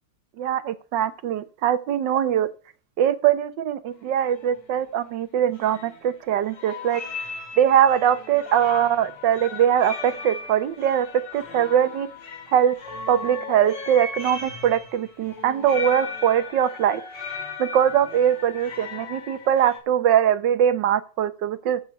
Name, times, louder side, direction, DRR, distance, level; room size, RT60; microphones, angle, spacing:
voice 1, 0.4-2.5 3.0-7.0 7.6-11.1 11.3-12.1 12.5-12.7 13.1-17.0 17.6-21.8, right 9 dB, 85° right, 13 dB, 1.6 m, -22 dB
sound 1, 3.9-4.0 4.3-4.6 5.5-6.3 6.5-19.8, left 5 dB, 75° left, 2.9 m, -37 dB
14.5 x 6.1 x 5.3 m, 0.37 s
omnidirectional pair, 1.9 m